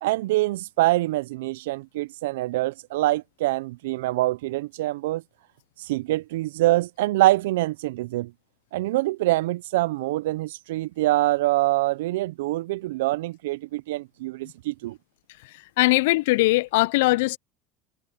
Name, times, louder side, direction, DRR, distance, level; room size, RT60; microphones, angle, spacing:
voice 1, 0.0-5.2 5.8-8.3 8.7-15.0, right 17 dB, 80° right, 0.4 m, -25 dB
voice 2, 15.8-17.4, left 21 dB, 80° left, 0.3 m, -20 dB
hypercardioid pair, 85°, 0 cm